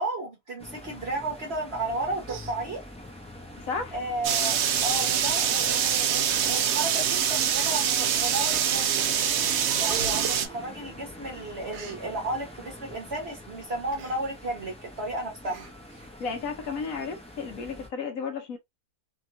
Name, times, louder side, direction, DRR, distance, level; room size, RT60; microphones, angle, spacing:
voice 1, 0.0-2.8 3.9-9.0 9.7-15.7, right 2 dB, 50° right, 1.0 m, -33 dB
sound 1, 0.6-17.9, left 1 dB, 10° left, 0.4 m, -45 dB
Human voice, 1.8-2.0 2.2-3.2 3.9-4.1 4.5-4.7 5.1-5.2 6.0-6.1 6.7-6.9 7.8-8.3 8.8-9.2 9.4-11.1 11.4-12.0 13.9-14.2 14.6-14.7 15.0-15.1 15.5-16.1 16.5-16.6, right 8 dB, 90° right, 1.4 m, -44 dB
voice 2, 3.6-4.0 16.2-18.6, left 5 dB, 65° left, 1.1 m, -33 dB
sound 2, 4.2-10.5, right 8 dB, 70° right, 0.6 m, -25 dB
2.9 x 2.8 x 2.5 m
omnidirectional pair, 1.7 m